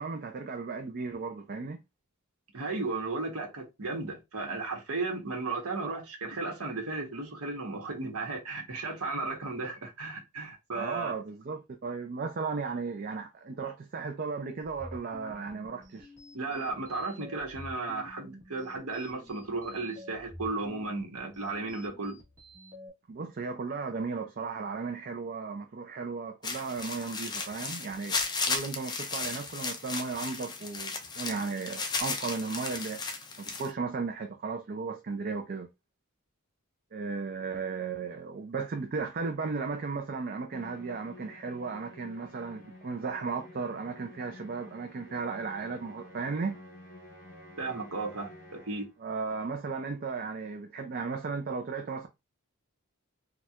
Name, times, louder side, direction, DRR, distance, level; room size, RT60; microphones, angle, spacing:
voice 1, 0.0-1.8 10.7-16.1 23.1-28.2 28.4-35.7 36.9-46.6 49.0-52.1, right 4 dB, 45° right, 0.4 m, -35 dB
voice 2, 2.5-11.1 16.3-22.2 47.6-48.8, right 3 dB, 75° right, 1.1 m, -35 dB
sound 1, 14.6-22.9, equal, 15° right, 1.2 m, -49 dB
sound 2, 26.4-33.7, left 4 dB, 20° left, 0.4 m, -35 dB
Musical instrument, 40.5-49.0, left 1 dB, 45° left, 1.1 m, -51 dB
4.2 x 2.3 x 2.4 m
head